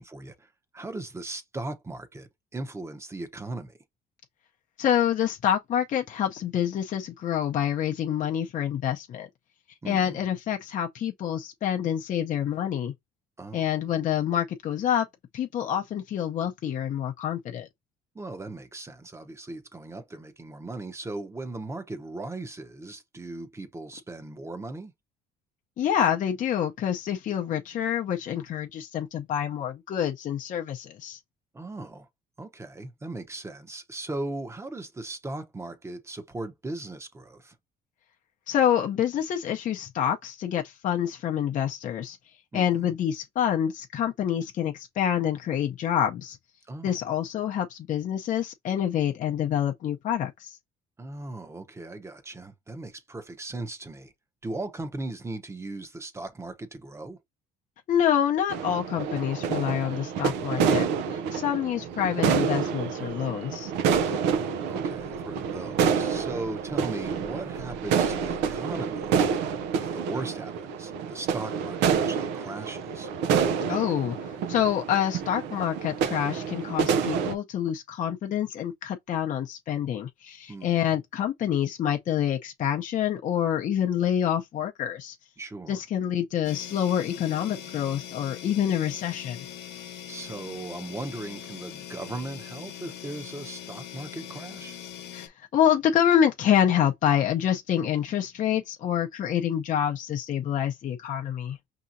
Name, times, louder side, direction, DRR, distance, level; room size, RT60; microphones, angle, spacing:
voice 1, 0.0-3.8 9.8-10.2 13.4-13.7 18.1-24.9 31.5-32.1 32.4-37.6 42.5-43.0 46.7-47.0 51.0-54.1 54.4-57.2 64.0-69.3 69.8-73.1 80.5-80.9 85.4-85.8 90.1-94.8, right 2 dB, 15° right, 0.9 m, -38 dB
voice 2, 4.8-9.3 9.9-12.9 13.5-15.1 15.3-17.7 25.8-31.2 38.5-42.2 42.5-46.4 46.8-50.6 57.9-63.7 73.7-85.2 85.7-89.5 95.1-101.6, left 9 dB, 50° left, 0.6 m, -27 dB
sound 1, 58.5-77.3, right 6 dB, 90° right, 0.6 m, -28 dB
sound 2, 86.4-95.3, left 9 dB, 75° left, 1.0 m, -42 dB
5.4 x 2.8 x 2.6 m
cardioid pair, 110°, 17 cm